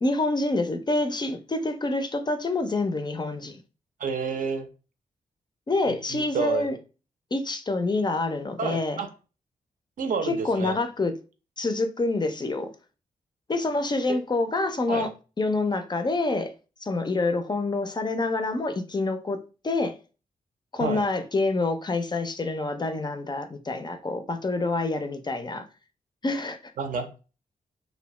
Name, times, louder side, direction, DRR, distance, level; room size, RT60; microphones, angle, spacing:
voice 1, 0.0-3.6 5.7-6.8 7.3-9.0 10.2-11.1 11.6-12.7 13.5-15.1 15.4-16.5 16.8-20.0 20.7-25.7 26.2-26.6, left 2 dB, 30° left, 0.4 m, -27 dB
voice 2, 4.0-4.7 5.9-6.7 8.6-9.1 10.0-10.8 14.1-14.2 14.9-15.1 20.8-21.0 26.8-27.2, right 5 dB, 65° right, 0.6 m, -30 dB
2.6 x 2.0 x 3.1 m
cardioid pair, 50°, 15 cm